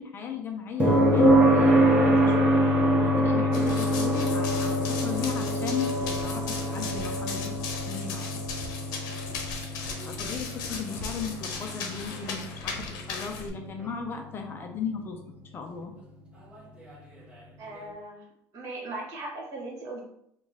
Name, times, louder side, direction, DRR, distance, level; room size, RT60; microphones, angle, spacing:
voice 1, 0.0-2.5 3.0-7.6 7.9-8.4 10.1-15.2 15.5-15.9, left 6 dB, 30° left, 4 dB, 0.5 m, -36 dB
sound 1, 0.8-14.7 16.9-17.0, right 1 dB, 15° right, 0.8 m, -25 dB
Run, 3.5-13.5, left 4 dB, 65° left, 0.8 m, -37 dB
voice 2, 17.6-18.3 18.5-20.0, right 2 dB, 45° right, -2 dB, 1.5 m, -38 dB
4.2 x 2.4 x 3.5 m, 0.75 s
cardioid pair, 145°, 7 cm